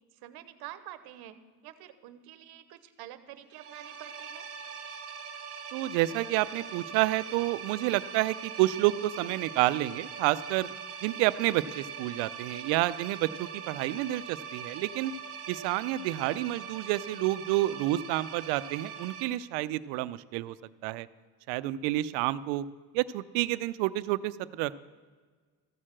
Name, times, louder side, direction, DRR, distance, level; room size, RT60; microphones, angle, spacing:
voice 1, 0.1-1.4 1.6-4.5, right 13 dB, 55° right, 12 dB, 0.9 m, -47 dB
sound 1, 3.5-19.2, right 6 dB, 35° right, 1.1 m, -42 dB
voice 2, 5.7-10.7 11.0-15.1 15.5-20.6 20.8-21.1 21.5-22.6 22.9-24.7, right 16 dB, 85° right, 16 dB, 0.6 m, -29 dB
14.0 x 6.5 x 7.5 m, 1.5 s
cardioid pair, 145°, 43 cm